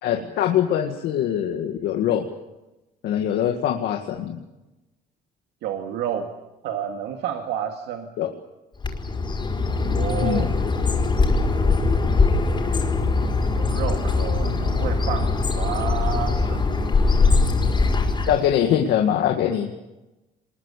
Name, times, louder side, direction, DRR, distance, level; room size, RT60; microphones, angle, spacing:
voice 1, 0.0-2.3 3.0-4.4 8.2-8.3 10.2-10.6 18.3-19.8, left 10 dB, 80° left, 4 dB, 1.9 m, -23 dB
voice 2, 5.6-6.3 6.6-8.1 9.9-10.5 13.5-16.6, right 9 dB, 85° right, 4 dB, 2.1 m, -30 dB
Bird, 8.8-18.5, left 3 dB, 25° left, 4.9 m, -21 dB
24.5 x 21.0 x 8.4 m, 1.0 s
cardioid pair, 110°, 17 cm